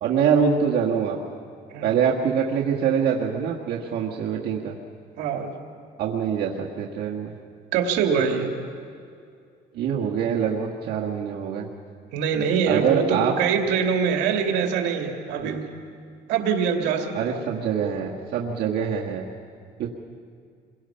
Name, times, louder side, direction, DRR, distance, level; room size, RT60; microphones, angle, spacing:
voice 1, 0.0-1.2 1.8-4.8 6.0-7.3 9.7-11.7 12.7-13.3 15.4-15.6 17.1-19.3 19.8-19.9, right 7 dB, 70° right, -2 dB, 1.8 m, -24 dB
voice 2, 5.2-5.5 7.7-8.5 12.1-15.7 16.3-17.2, right 6 dB, 90° right, 3 dB, 2.5 m, -24 dB
27.5 x 23.0 x 5.8 m, 2.3 s
cardioid pair, 110°, 17 cm